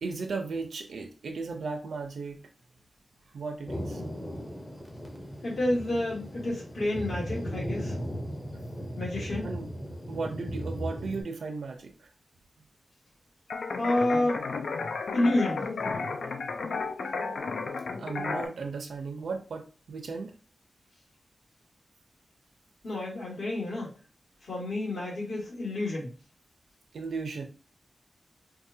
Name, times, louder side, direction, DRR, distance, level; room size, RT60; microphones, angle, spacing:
voice 1, 0.0-2.4 3.3-4.0 8.3-8.4 9.4-9.7 10.1-11.9 18.0-20.3 26.9-27.5, right 4 dB, 85° right, 5 dB, 0.7 m, -35 dB
Thunder, 3.7-11.2, equal, 10° left, 0.6 m, -37 dB
voice 2, 5.4-8.0 9.0-9.5 13.8-14.4 15.1-15.7 22.8-23.9 24.4-26.1, left 1 dB, 65° left, -4 dB, 1.8 m, -29 dB
sound 1, 13.5-18.5, left 4 dB, 80° left, 0.5 m, -33 dB
4.6 x 2.3 x 2.7 m, 0.33 s
wide cardioid pair, 175°, 0 cm